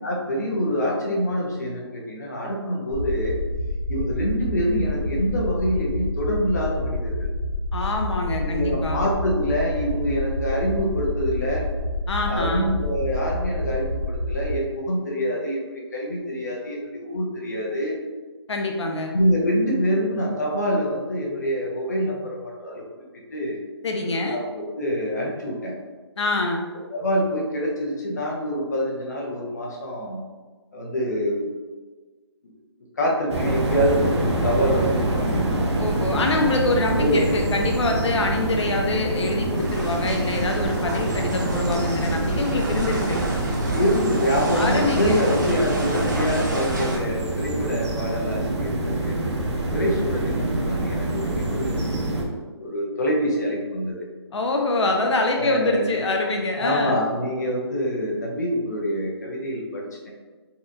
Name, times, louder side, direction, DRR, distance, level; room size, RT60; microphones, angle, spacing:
voice 1, 0.0-3.4 3.9-7.3 8.4-11.7 12.3-15.7 15.9-17.9 19.1-22.4 22.6-22.8 23.3-23.6 24.3-25.7 26.9-30.2 30.7-31.5 33.0-35.5 37.0-37.2 43.7-49.4 49.7-51.8 52.6-54.1 55.3-56.0 56.6-60.1, equal, 40° left, -3 dB, 0.6 m, -25 dB
sound 1, 2.9-14.5, left 1 dB, 5° right, 0.9 m, -28 dB
voice 2, 7.7-9.0 12.1-12.7 18.5-19.1 23.8-24.4 26.2-26.7 35.8-43.2 44.5-45.2 54.3-57.0, left 2 dB, 80° left, 2 dB, 0.5 m, -25 dB
sound 2, 33.3-52.2, right 2 dB, 85° right, 0.7 m, -25 dB
sound 3, 39.5-47.0, right 1 dB, 40° right, 0.7 m, -31 dB
4.1 x 2.3 x 2.5 m, 1.3 s
hypercardioid pair, 175°, 14 cm